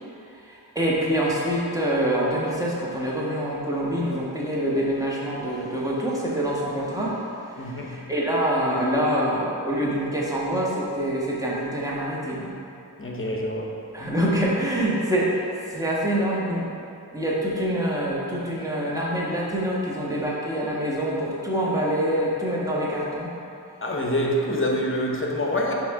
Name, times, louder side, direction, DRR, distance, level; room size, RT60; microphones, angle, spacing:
voice 1, 0.7-12.5 13.9-15.4 15.7-16.6 17.1-23.3, equal, 10° right, -6 dB, 1.3 m, -25 dB
voice 2, 7.6-8.0 13.0-13.8 23.8-25.7, equal, 30° left, -1 dB, 0.9 m, -26 dB
6.1 x 3.5 x 4.8 m, 2.6 s
wide cardioid pair, 40°, 40 cm